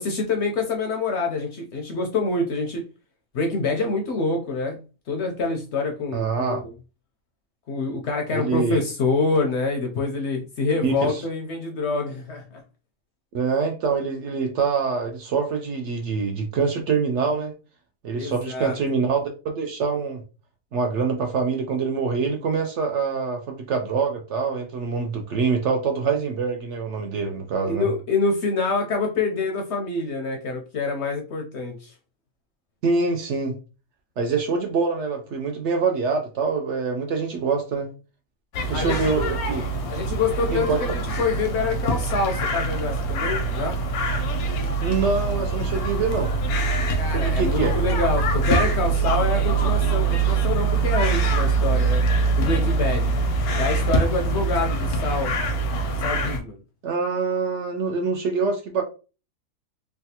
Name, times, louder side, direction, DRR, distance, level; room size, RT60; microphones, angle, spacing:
voice 1, 0.0-2.8 3.3-4.8 5.1-6.7 7.7-12.6 18.1-18.8 27.6-31.9 38.7-39.3 39.9-43.8 47.0-52.0 52.3-53.1 53.6-55.3 56.0-56.6, left 3 dB, 65° left, 0.7 m, -26 dB
voice 2, 6.1-6.6 8.3-8.8 10.8-11.2 13.3-17.5 18.0-20.2 20.7-27.9 32.8-33.5 34.2-37.9 38.7-39.6 40.5-40.8 44.8-46.3 47.1-47.7 56.8-58.8, right 5 dB, 65° right, 0.7 m, -25 dB
sound 1, 38.5-56.4, right 3 dB, 85° left, 1.1 m, -23 dB
3.4 x 2.1 x 2.7 m
omnidirectional pair, 1.5 m